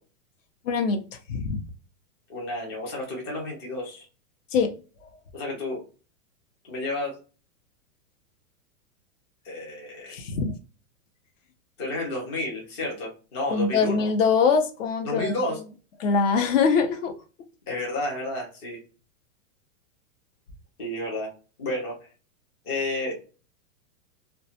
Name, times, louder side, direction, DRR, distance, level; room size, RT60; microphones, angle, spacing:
voice 1, 0.6-1.0 1.3-1.6 4.5-4.7 5.0-5.1 10.1-10.5 13.5-15.3 16.0-17.1, left 5 dB, 65° left, 6 dB, 0.7 m, -23 dB
voice 2, 2.3-4.1 5.3-5.8 6.7-7.2 9.4-10.2 11.8-14.1 15.0-15.6 17.7-18.8 20.8-21.3 21.6-22.0 22.6-23.2, left 1 dB, 20° left, -2 dB, 0.3 m, -31 dB
2.2 x 2.1 x 2.7 m, 0.35 s
supercardioid pair, 160°, 41 cm